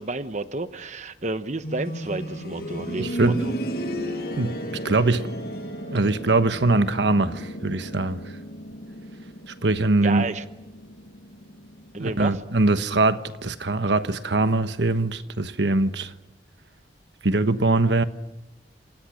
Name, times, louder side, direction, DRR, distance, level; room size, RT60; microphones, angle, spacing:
voice 1, 0.0-3.5 10.0-10.4 11.9-12.4, right 2 dB, 40° right, 0.9 m, -31 dB
sound 1, 1.6-12.4 13.8-13.9, equal, 60° left, 7.5 m, -34 dB
voice 2, 3.0-3.4 4.4-4.6 4.8-5.3 5.9-8.2 9.5-10.3 12.0-16.1 17.2-18.0, right 2 dB, 80° right, 1.2 m, -22 dB
29.5 x 27.5 x 6.4 m
head